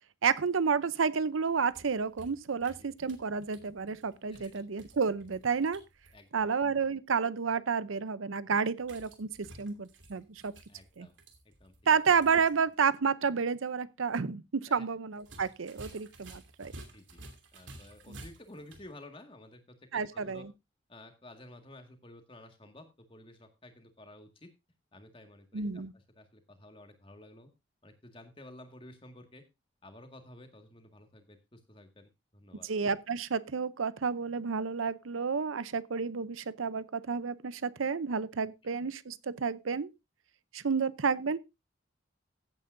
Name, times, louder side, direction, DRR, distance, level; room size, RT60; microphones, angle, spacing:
voice 1, 0.2-5.8 6.3-10.5 11.0-11.1 11.9-16.7 19.9-20.5 25.5-25.9 32.6-39.9 40.5-41.4, right 5 dB, 90° right, 0.7 m, -30 dB
sound 1, 1.5-6.2 8.8-12.5 12.8-12.9 15.2-18.9, right 2 dB, 70° right, 2.8 m, -53 dB
voice 2, 6.1-6.5 10.7-11.1 11.5-11.7 14.7-14.9 16.9-17.2 17.5-20.5 20.9-24.5 24.9-27.5 27.8-29.4 29.8-32.7, left 1 dB, 25° left, 1.9 m, -52 dB
15.5 x 8.9 x 2.6 m
head